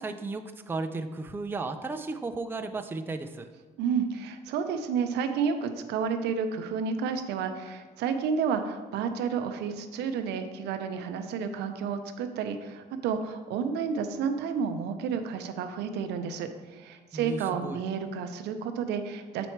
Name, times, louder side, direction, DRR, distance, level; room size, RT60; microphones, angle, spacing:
voice 1, 0.0-3.5 17.1-17.8, right 3 dB, 15° right, 7 dB, 0.4 m, -34 dB
voice 2, 3.8-19.5, right 6 dB, 80° right, 7 dB, 0.7 m, -31 dB
7.0 x 4.3 x 4.5 m, 1.3 s
cardioid pair, 110°, 17 cm